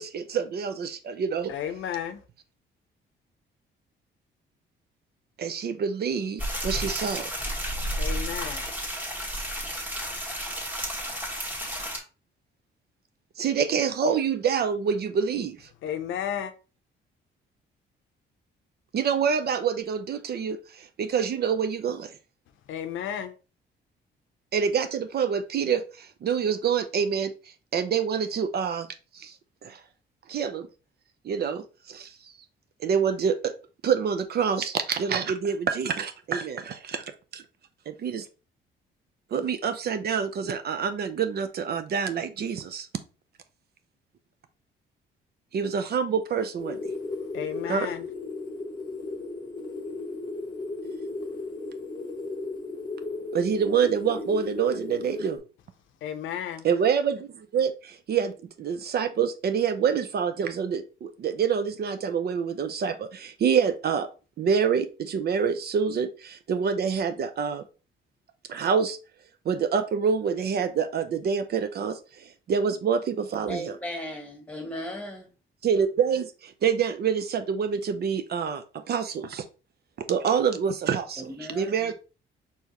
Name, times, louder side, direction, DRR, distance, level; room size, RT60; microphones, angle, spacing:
voice 1, 0.0-1.5 5.4-7.3 13.4-15.7 18.9-22.2 24.5-27.3 27.7-28.9 29.1-29.4 29.6-29.8 30.3-30.7 31.2-32.3 32.8-33.5 33.8-37.4 37.9-38.3 39.3-42.9 45.5-46.9 47.7-47.9 53.3-55.4 56.6-64.1 64.4-67.6 68.5-69.0 69.4-73.8 75.6-79.4 80.1-81.9, right 7 dB, 55° right, 0.5 m, -27 dB
voice 2, 1.5-2.2 8.0-8.7 15.8-16.5 22.7-23.3 47.3-48.0 56.0-56.7, left 9 dB, 80° left, 0.6 m, -32 dB
sound 1, 6.4-12.0, equal, 10° right, 1.4 m, -32 dB
sound 2, 46.6-55.4, left 3 dB, 20° left, 1.0 m, -35 dB
voice 3, 73.5-75.3 81.2-81.9, left 1 dB, 5° left, 1.6 m, -37 dB
4.5 x 3.4 x 2.9 m
cardioid pair, 90°, 20 cm